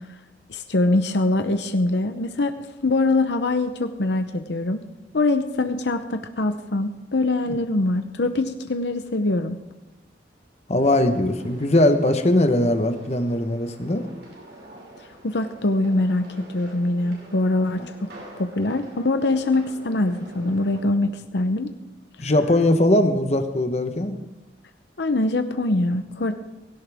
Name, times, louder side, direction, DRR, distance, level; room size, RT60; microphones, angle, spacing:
voice 1, 0.5-2.6 2.8-4.8 5.1-9.6 15.2-18.1 18.4-21.7 25.0-26.3, left 2 dB, 70° left, 8 dB, 0.8 m, -23 dB
voice 2, 10.7-14.1 22.2-24.2, left 1 dB, 35° left, 7 dB, 1.1 m, -20 dB
sound 1, 10.8-20.8, right 1 dB, 80° right, 6.0 m, -45 dB
17.0 x 16.5 x 3.5 m, 1.0 s
head